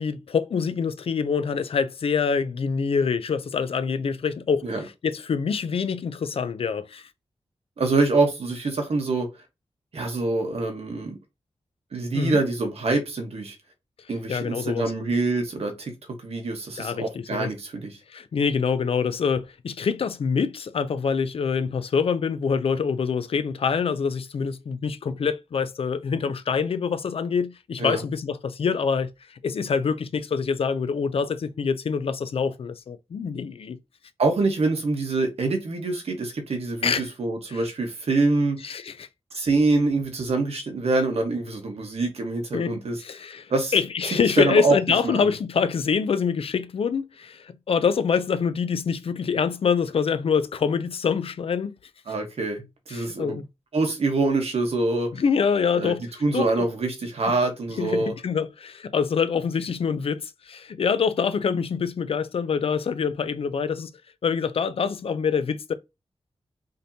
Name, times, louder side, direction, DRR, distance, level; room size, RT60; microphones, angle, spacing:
voice 1, 0.0-7.1 12.1-12.4 14.3-14.9 16.8-17.5 18.1-33.8 36.8-37.1 37.5-37.6 38.6-39.1 42.5-51.8 52.9-53.4 55.1-56.0 56.3-56.7 57.8-63.9 64.2-65.7, left 6 dB, 60° left, 0.4 m, -25 dB
voice 2, 7.8-9.3 9.9-11.2 11.9-13.5 14.1-15.9 16.2-18.0 27.8-28.0 34.2-38.6 39.3-43.0 43.5-43.7 44.4-44.8 45.0-45.3 52.1-53.4 53.7-55.1 55.7-55.9 56.2-58.1, right 3 dB, 70° right, 1.1 m, -25 dB
5.1 x 2.8 x 2.7 m
wide cardioid pair, 140°, 11 cm